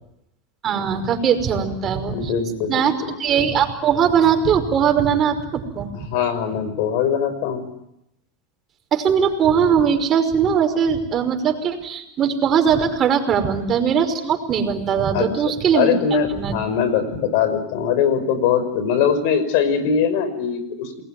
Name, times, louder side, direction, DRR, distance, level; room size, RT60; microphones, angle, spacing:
voice 1, 0.6-2.3 2.7-2.9 3.2-5.9 8.9-15.9 16.3-16.6, right 7 dB, 35° right, 6 dB, 5.5 m, -20 dB
voice 2, 2.1-3.2 6.1-7.7 15.1-15.3 15.7-21.0, left 7 dB, 65° left, 13 dB, 5.8 m, -21 dB
29.0 x 21.0 x 9.3 m, 0.84 s
supercardioid pair, 120°, 0 cm